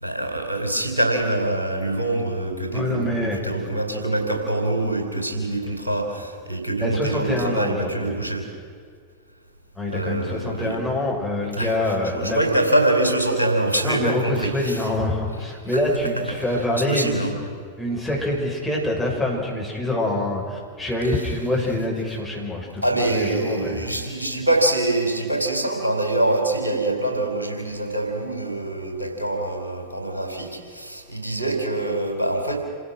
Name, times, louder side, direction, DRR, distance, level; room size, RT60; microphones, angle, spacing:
voice 1, 0.0-8.5 9.9-10.8 11.5-14.9 16.7-17.5 21.0-21.3 22.8-32.6, right 1 dB, 80° right, 2 dB, 3.9 m, -24 dB
voice 2, 2.7-3.4 6.8-7.9 9.7-12.4 13.8-17.3 17.8-22.8 23.1-23.8, left 1 dB, 5° left, -3 dB, 6.0 m, -25 dB
27.5 x 16.0 x 6.2 m, 2.1 s
figure-of-eight pair, 90°, 0 cm